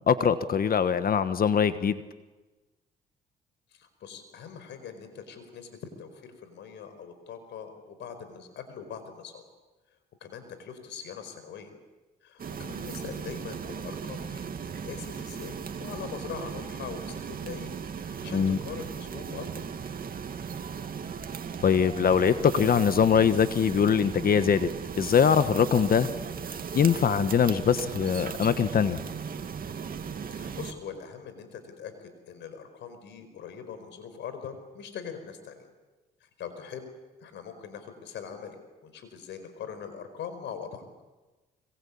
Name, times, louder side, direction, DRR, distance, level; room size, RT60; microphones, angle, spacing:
voice 1, 0.0-2.0 18.3-18.6 21.6-24.7 25.0-26.1 26.7-29.0, left 7 dB, 50° left, 12 dB, 1.4 m, -22 dB
voice 2, 3.7-9.4 10.2-11.7 12.2-14.5 14.8-19.6 30.3-35.7 36.2-36.8 37.2-38.6 38.8-40.8, left 7 dB, 75° left, 9 dB, 4.9 m, -42 dB
sound 1, 12.4-30.7, right 6 dB, 50° right, 2.4 m, -37 dB
25.5 x 24.5 x 8.7 m, 1.2 s
supercardioid pair, 65°, 19 cm